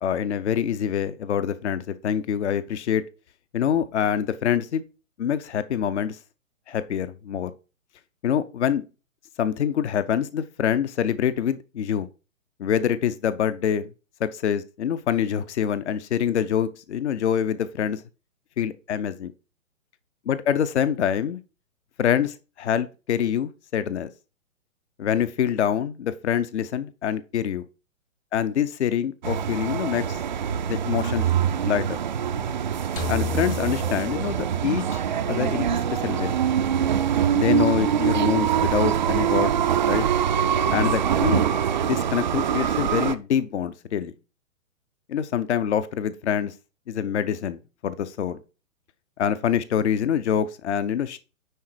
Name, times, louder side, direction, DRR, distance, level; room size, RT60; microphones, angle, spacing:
voice 1, 0.0-3.0 3.5-4.8 5.2-6.2 6.7-7.5 8.2-8.8 9.4-12.1 12.6-13.9 14.2-18.0 18.6-19.3 20.3-21.4 22.0-22.3 22.6-24.1 25.0-27.6 28.3-30.2 30.7-31.3 31.6-32.0 33.1-35.0 35.3-35.7 36.0-36.3 37.3-39.6 39.9-40.0 40.7-41.5 41.8-44.1 45.1-46.5 46.9-48.4 49.2-51.2, left 8 dB, 55° left, 0.8 m, -25 dB
sound 1, 29.2-43.1, right 8 dB, 35° right, 0.5 m, -24 dB
sound 2, 33.0-35.2, left 1 dB, 10° left, 0.6 m, -33 dB
10.5 x 3.9 x 4.6 m
figure-of-eight pair, 125°, 42 cm